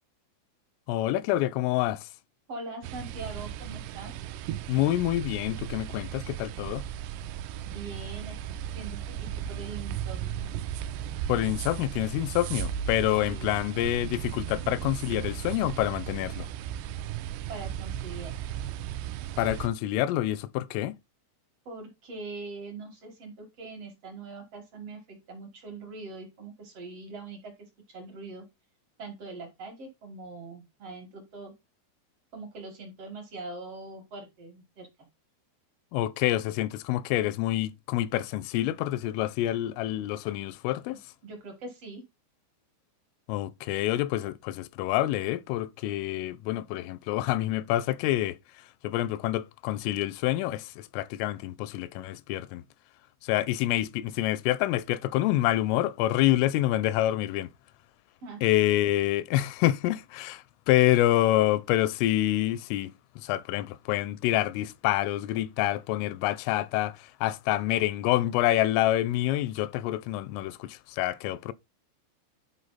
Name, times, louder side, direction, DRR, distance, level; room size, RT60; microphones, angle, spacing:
voice 1, 0.9-2.1 4.7-6.8 11.3-16.5 19.4-21.0 35.9-41.0 43.3-48.4 48.8-52.6 53.2-57.5 58.4-71.5, left 14 dB, 85° left, 3.2 m, -27 dB
voice 2, 2.5-4.1 7.6-8.4 8.7-10.5 13.3-13.7 17.5-18.4 21.7-27.5 27.9-28.5 29.0-31.5 32.3-34.9 41.2-42.0 58.2-58.4, right 3 dB, 55° right, 1.7 m, -42 dB
sound 1, 2.8-19.7, right 10 dB, 85° right, 2.5 m, -36 dB
11.5 x 4.8 x 4.1 m
omnidirectional pair, 5.8 m